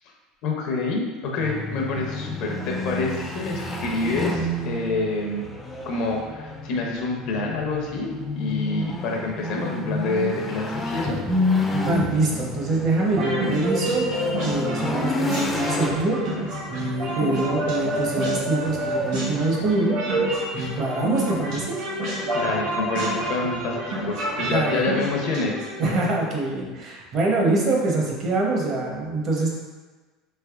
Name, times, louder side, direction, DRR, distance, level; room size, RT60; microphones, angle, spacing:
voice 1, 0.4-5.5 5.9-11.2 22.3-25.5, left 3 dB, 65° left, 1 dB, 0.6 m, -27 dB
sound 1, 1.4-20.4, left 2 dB, 15° left, 0.4 m, -30 dB
voice 2, 11.4-14.0 14.4-16.2 16.7-19.9 20.5-21.8 24.4-24.9 25.8-29.5, right 2 dB, 45° right, -2 dB, 0.8 m, -24 dB
sound 2, 13.1-25.9, right 1 dB, 70° right, 1.4 m, -28 dB
3.3 x 2.9 x 2.4 m, 1.3 s
supercardioid pair, 120°, 0 cm